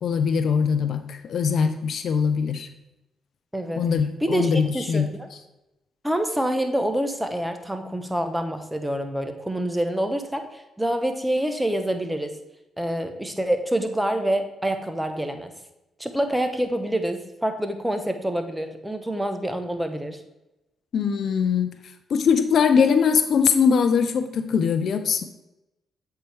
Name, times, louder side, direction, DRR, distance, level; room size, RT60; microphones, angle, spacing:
voice 1, 0.0-2.7 3.8-5.1 20.9-21.7 22.1-25.3, left 6 dB, 65° left, 10 dB, 0.5 m, -21 dB
voice 2, 3.5-3.8 4.2-5.3 6.0-12.3 12.8-15.5 16.0-20.2, right 1 dB, 5° right, 7 dB, 1.0 m, -26 dB
7.9 x 4.5 x 3.4 m, 0.95 s
hypercardioid pair, 50°, 0 cm